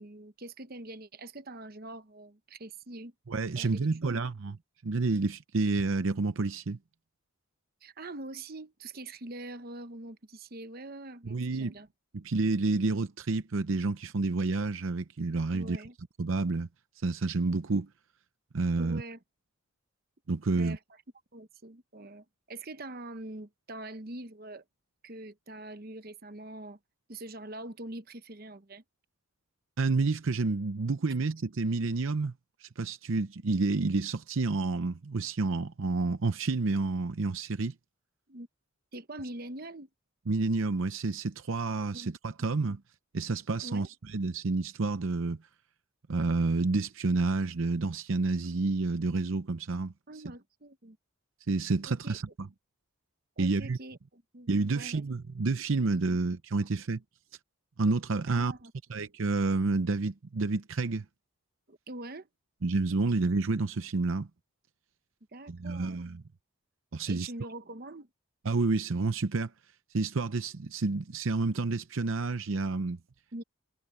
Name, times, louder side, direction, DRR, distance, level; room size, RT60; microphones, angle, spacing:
voice 1, 0.0-3.1 3.5-4.2 7.8-11.9 15.5-15.9 18.8-19.2 20.5-20.8 21.3-24.6 25.0-26.8 27.1-28.8 38.3-38.5 38.9-39.9 41.9-42.1 42.4-42.5 43.6-43.9 50.1-51.0 51.9-52.2 53.4-54.5 54.7-55.0 58.3-58.7 61.7-62.3 65.3-66.0 67.1-68.1 73.3-73.4, right 2 dB, 45° right, 1.0 m, -44 dB
voice 2, 3.3-4.5 4.8-6.8 11.3-11.7 12.1-15.8 16.2-16.7 17.0-17.9 18.5-19.0 20.3-20.8 29.8-32.3 32.6-37.7 40.3-42.8 43.1-45.4 46.1-49.9 51.5-52.5 53.4-53.8 54.5-57.0 57.8-58.5 58.9-61.0 62.6-64.3 65.5-66.2 66.9-67.3 68.4-69.5 69.9-73.0, right 3 dB, 65° right, 0.7 m, -29 dB
head